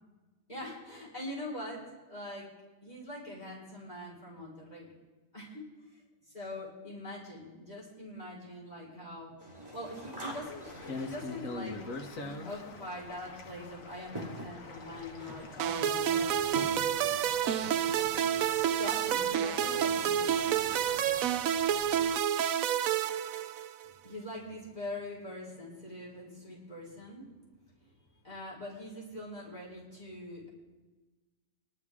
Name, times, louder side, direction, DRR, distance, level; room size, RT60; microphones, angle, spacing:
voice 1, 0.5-1.8 2.1-2.5 2.8-4.9 5.3-6.0 6.3-11.8 12.2-16.5 18.8-20.4 24.0-27.3 27.8-27.9 28.2-30.5, left 1 dB, 30° left, -6 dB, 4.9 m, -43 dB
sound 1, 9.4-21.4, equal, 15° right, 2.5 m, -47 dB
sound 2, 10.3-22.2, left 3 dB, 75° left, 1.6 m, -45 dB
sound 3, 15.6-23.9, right 9 dB, 85° right, 1.0 m, -29 dB
25.5 x 12.0 x 3.6 m, 1.2 s
omnidirectional pair, 1.4 m